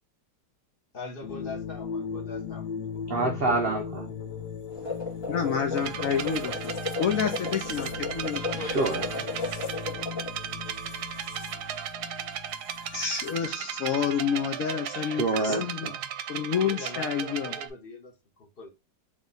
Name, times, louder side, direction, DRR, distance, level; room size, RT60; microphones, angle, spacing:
voice 1, 0.9-2.7 2.9-3.0 4.8-5.0 8.2-9.3 9.6-9.8 16.5-18.7, left 2 dB, 40° left, 1.0 m, -42 dB
sound 1, 1.2-13.5, left 6 dB, 85° left, 1.3 m, -38 dB
voice 2, 3.1-4.1 8.6-9.0 14.9-16.0, right 2 dB, 85° right, 0.5 m, -27 dB
sound 2, 4.7-10.3, left 3 dB, 15° left, 1.8 m, -35 dB
voice 3, 5.3-6.7 7.0-8.4 12.9-15.9 16.3-17.6, left 7 dB, 70° left, 0.8 m, -29 dB
sound 3, 5.8-17.7, right 9 dB, 70° right, 1.0 m, -36 dB
3.7 x 3.0 x 3.8 m
omnidirectional pair, 1.9 m